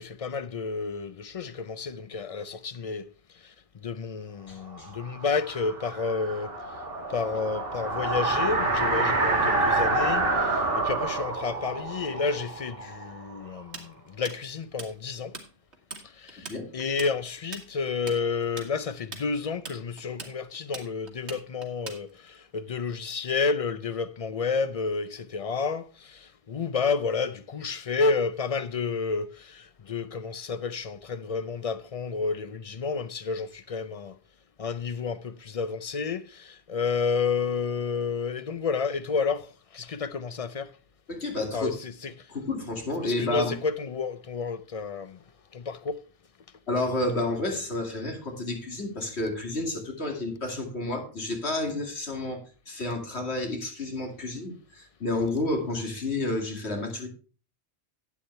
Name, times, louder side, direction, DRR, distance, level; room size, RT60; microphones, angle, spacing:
voice 1, 0.0-3.1 3.4-3.5 3.8-6.5 7.1-15.3 16.1-34.2 34.6-40.7 41.5-42.3 43.0-45.2 45.5-46.0, left 5 dB, 45° left, 0.5 m, -30 dB
voice 2, 4.5-4.9 16.4-16.7 41.1-41.7 42.3-43.5 46.7-57.1, left 2 dB, 70° left, 2.6 m, -30 dB
sound 1, 4.8-13.6, right 2 dB, 55° right, 2.0 m, -28 dB
Tools, 13.7-15.5 15.7-16.0 16.3-22.4, right 3 dB, 75° right, 2.1 m, -41 dB
11.5 x 8.5 x 3.3 m
omnidirectional pair, 1.1 m